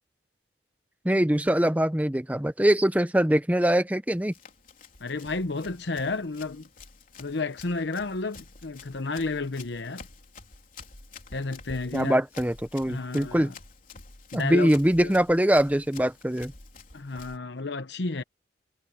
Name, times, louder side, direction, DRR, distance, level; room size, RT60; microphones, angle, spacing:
voice 1, 1.0-4.3 11.9-13.5 14.3-16.5, equal, 10° right, 0.9 m, -23 dB
Run, 4.1-17.4, left 4 dB, 45° left, 3.8 m, -49 dB
voice 2, 5.0-6.7 7.2-10.1 11.3-12.2 12.9-13.5 14.3-14.7 15.0-15.1 16.9-18.2, left 3 dB, 70° left, 0.9 m, -31 dB
head